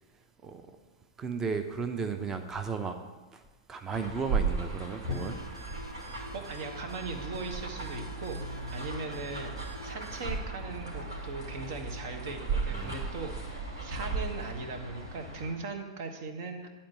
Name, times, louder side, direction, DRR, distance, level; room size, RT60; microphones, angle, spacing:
voice 1, 1.2-3.0 3.3-3.4 3.7-5.4 12.7-12.9, right 5 dB, 20° right, 7 dB, 0.8 m, -34 dB
sound 1, 3.9-15.5, right 3 dB, 70° right, 2.6 m, -36 dB
sound 2, 5.1-10.4, left 1 dB, 90° right, 1.6 m, -48 dB
voice 2, 6.1-8.4 8.7-9.6 9.8-16.7, right 4 dB, 50° right, 6 dB, 1.2 m, -39 dB
10.5 x 4.4 x 7.8 m, 1.2 s
figure-of-eight pair, 95°, 2 cm